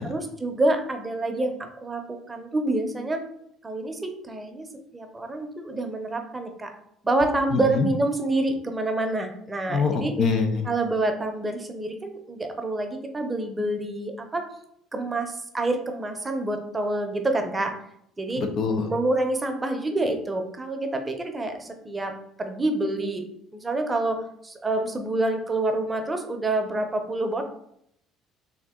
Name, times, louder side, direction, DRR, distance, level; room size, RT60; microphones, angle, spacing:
voice 1, 0.0-3.2 3.6-4.7 4.9-6.7 7.0-10.1 10.7-14.4 14.9-17.7 18.2-18.4 18.9-23.3 23.5-24.2 24.4-27.5, right 2 dB, 20° right, 5 dB, 0.7 m, -27 dB
voice 2, 7.5-7.9 9.7-10.7 18.4-18.9, left 4 dB, 60° left, 6 dB, 0.6 m, -24 dB
3.6 x 2.7 x 3.7 m, 0.73 s
supercardioid pair, 80°, 0 cm